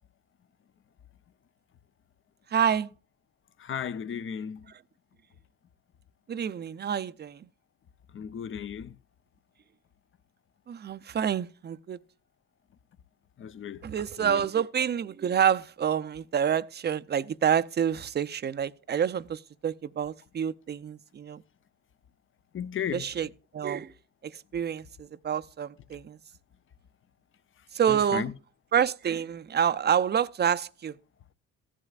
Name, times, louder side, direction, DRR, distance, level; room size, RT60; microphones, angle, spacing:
voice 1, 2.5-2.9 6.3-7.5 10.7-12.0 13.8-21.4 22.9-23.3 23.5-23.9 24.2-26.2 27.7-28.3 28.7-30.9, right 8 dB, 30° right, 0.6 m, -28 dB
voice 2, 3.6-4.7 8.1-9.0 13.4-13.8 14.2-14.4 22.5-23.0 27.9-28.3, left 8 dB, 40° left, 0.7 m, -35 dB
15.0 x 11.0 x 2.4 m
cardioid pair, 85°, 33 cm